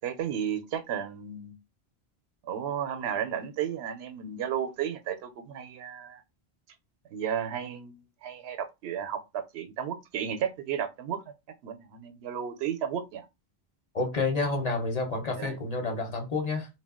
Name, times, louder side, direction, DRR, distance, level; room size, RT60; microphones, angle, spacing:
voice 1, 0.0-1.6 2.4-6.2 7.1-11.2 11.6-13.2 15.1-15.6, right 8 dB, 90° right, 0.8 m, -33 dB
voice 2, 13.9-16.7, left 3 dB, 45° left, 0.7 m, -29 dB
2.2 x 2.1 x 3.5 m
omnidirectional pair, 1.1 m